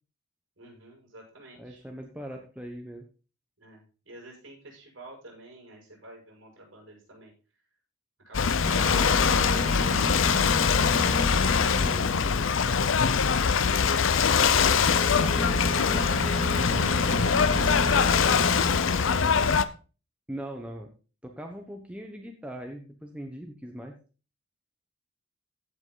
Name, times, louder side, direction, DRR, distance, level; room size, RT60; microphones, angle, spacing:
voice 1, 0.6-1.8 3.6-7.3 8.2-9.2 16.6-19.4, right 2 dB, 60° right, -1 dB, 6.9 m, -49 dB
voice 2, 1.6-3.1 11.7-12.6 20.3-20.9 21.2-24.0, equal, 5° right, 2 dB, 1.1 m, -40 dB
Ocean / Boat Water vehicle, 8.3-19.6, left 6 dB, 65° left, 0.6 m, -23 dB
sound 1, 8.6-13.1 14.6-19.4, left 1 dB, 35° left, 2.2 m, -33 dB
15.0 x 6.0 x 4.0 m, 0.35 s
head